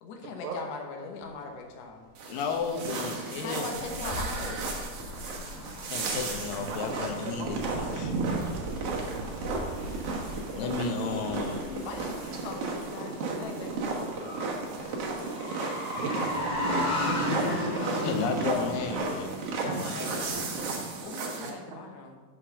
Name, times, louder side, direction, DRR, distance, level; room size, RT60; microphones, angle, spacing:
voice 1, 0.0-2.1 3.4-4.6 9.3-9.9 11.8-14.2 14.8-14.9 16.0-16.7 19.6-22.2, left 4 dB, 65° left, 2 dB, 1.9 m, -41 dB
sound 1, 1.2-12.6, right 2 dB, 30° right, 2.0 m, -51 dB
sound 2, 2.1-21.5, right 3 dB, 60° right, 1.7 m, -34 dB
voice 2, 2.3-3.7 5.5-8.2 10.6-11.8 15.9-16.0 18.0-19.3, left 5 dB, 85° left, 5 dB, 2.6 m, -33 dB
sound 3, 2.5-20.5, left 1 dB, 40° left, 3.0 m, -36 dB
voice 3, 6.7-7.0 7.4-7.6 8.2-9.2 16.0-16.2 21.7-21.8, right 7 dB, 85° right, 1 dB, 2.6 m, -39 dB
6.6 x 6.2 x 6.2 m, 1.4 s
omnidirectional pair, 3.9 m